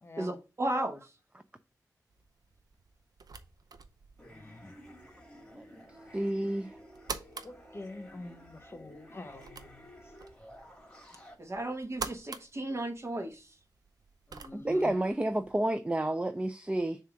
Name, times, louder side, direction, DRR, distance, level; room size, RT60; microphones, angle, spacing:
voice 1, 0.2-1.1 11.4-13.6, right 1 dB, 45° right, 1.4 m, -35 dB
sound 1, 2.1-15.7, right 4 dB, 75° right, 0.6 m, -48 dB
sound 2, 4.2-11.4, equal, 10° left, 2.1 m, -53 dB
voice 2, 4.3-4.7 7.4-9.8 14.3-14.9, left 2 dB, 40° left, 1.0 m, -46 dB
voice 3, 6.1-6.8 14.5-17.0, right 1 dB, 15° right, 0.5 m, -30 dB
6.8 x 2.9 x 4.9 m
cardioid pair, 60°, 7 cm